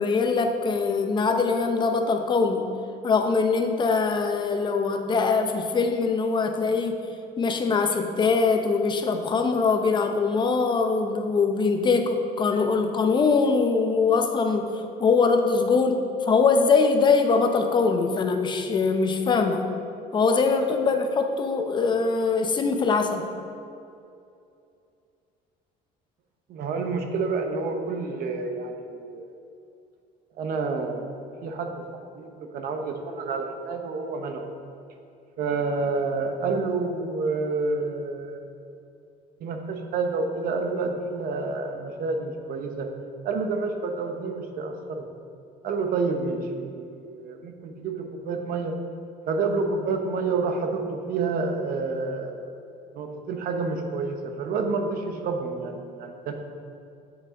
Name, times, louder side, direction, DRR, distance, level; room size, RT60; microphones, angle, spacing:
voice 1, 0.0-2.7 3.0-7.0 7.4-19.7 20.1-23.2, left 4 dB, 25° left, 5 dB, 0.6 m, -22 dB
voice 2, 26.5-29.3 30.4-31.1 31.4-31.8 32.1-34.5 35.4-38.4 39.4-42.9 43.2-45.1 45.6-48.7 49.3-52.4 52.9-56.3, right 4 dB, 60° right, 5 dB, 0.9 m, -29 dB
8.1 x 7.3 x 3.7 m, 2.6 s
cardioid pair, 145°, 17 cm